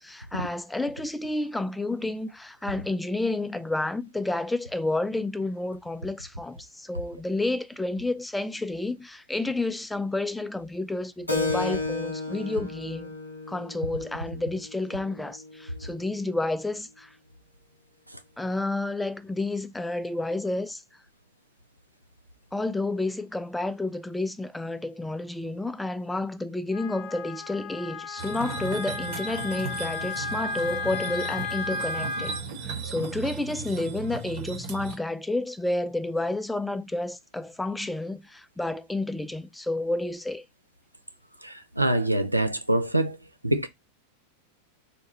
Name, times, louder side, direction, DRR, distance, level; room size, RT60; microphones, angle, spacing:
voice 1, 0.0-13.1 13.5-17.2 18.4-20.8 22.5-32.3 32.6-40.5, left 2 dB, 5° left, 0.3 m, -30 dB
Keyboard (musical), 11.3-16.4, left 3 dB, 85° left, 0.6 m, -34 dB
Wind instrument woodwind instrument, 26.7-32.4, left 4 dB, 55° left, 0.7 m, -34 dB
sound 1, 28.2-35.0, right 4 dB, 55° right, 1.1 m, -36 dB
voice 2, 41.4-43.2 43.4-43.7, right 1 dB, 85° right, 0.4 m, -25 dB
4.1 x 2.3 x 3.0 m
figure-of-eight pair, 90°, 0 cm